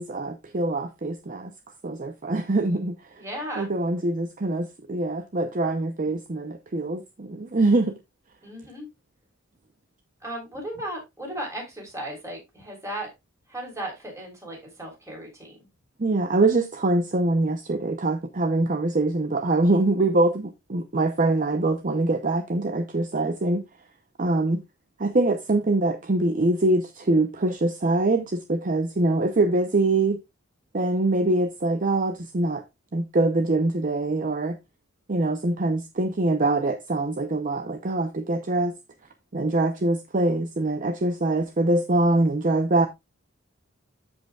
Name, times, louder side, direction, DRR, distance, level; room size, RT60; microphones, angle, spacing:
voice 1, 0.0-1.5 1.8-3.0 3.6-8.0 16.0-23.6 24.2-24.6 25.0-30.2 30.7-32.6 32.9-34.6 35.1-38.7 39.3-42.9, right 2 dB, 40° right, 0.7 m, -24 dB
voice 2, 3.2-3.7 8.4-8.9 10.2-13.1 13.5-15.7, right 1 dB, 15° right, 3.5 m, -36 dB
13.5 x 5.3 x 2.3 m
head